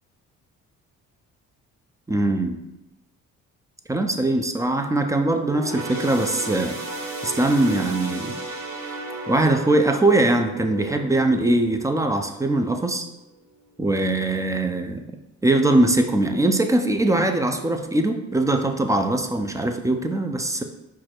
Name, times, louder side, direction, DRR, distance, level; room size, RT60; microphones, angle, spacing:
voice 1, 2.1-2.6 3.9-6.8 7.2-8.4 9.3-13.1 13.8-15.0 15.4-20.6, right 2 dB, 10° right, 5 dB, 0.4 m, -21 dB
sound 1, 5.4-13.1 13.5-13.7 14.6-14.7, right 2 dB, 65° right, 1.1 m, -35 dB
4.7 x 2.4 x 4.4 m, 0.91 s
cardioid pair, 90°, 30 cm